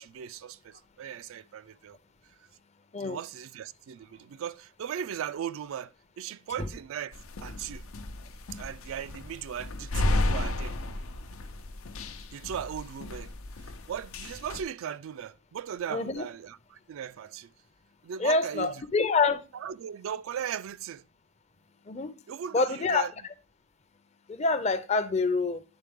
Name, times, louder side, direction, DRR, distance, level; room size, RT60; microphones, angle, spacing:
voice 1, 0.0-2.0 3.0-7.9 8.5-10.8 12.3-17.5 18.0-18.7 19.5-21.0 22.3-23.1, right 8 dB, 75° right, 0.3 m, -38 dB
sound 1, 7.1-14.6, left 2 dB, 85° left, 0.7 m, -33 dB
voice 2, 15.9-16.2 18.2-19.4 21.9-22.1 22.5-23.0 24.3-25.6, left 4 dB, 30° left, 0.5 m, -26 dB
9.8 x 3.8 x 3.5 m
head